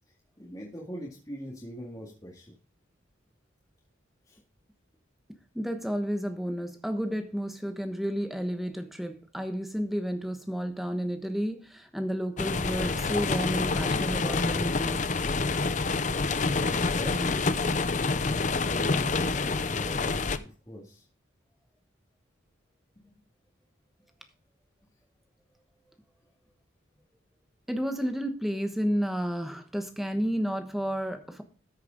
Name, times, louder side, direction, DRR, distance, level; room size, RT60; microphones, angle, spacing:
voice 1, 0.4-2.5 4.3-4.4 16.3-17.7 18.6-21.0, equal, 20° left, 1.9 m, -41 dB
voice 2, 5.5-15.1 27.7-31.4, equal, ahead, 1.1 m, -31 dB
sound 1, 12.4-20.4, left 3 dB, 40° left, 0.6 m, -27 dB
13.5 x 6.5 x 3.9 m
head